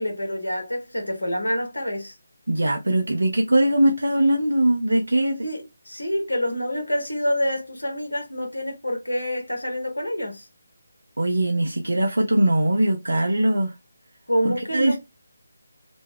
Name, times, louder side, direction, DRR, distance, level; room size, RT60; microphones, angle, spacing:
voice 1, 0.0-2.1 5.4-10.4 14.3-15.0, equal, 80° left, 1.3 m, -27 dB
voice 2, 2.5-5.4 11.2-13.7 14.4-15.0, right 1 dB, 70° right, 0.6 m, -21 dB
3.0 x 2.2 x 3.4 m
figure-of-eight pair, 155°, 0 cm